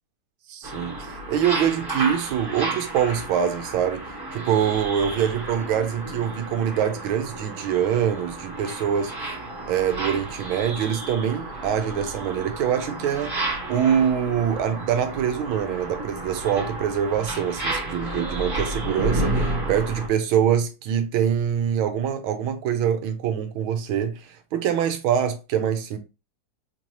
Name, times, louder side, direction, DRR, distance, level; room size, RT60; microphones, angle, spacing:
voice 1, 0.5-4.0 4.3-9.1 9.7-26.0, right 8 dB, 75° right, 1.4 m, -24 dB
sound 1, 0.6-20.1, right 2 dB, 20° right, 0.6 m, -32 dB
4.4 x 2.7 x 3.0 m
omnidirectional pair, 2.4 m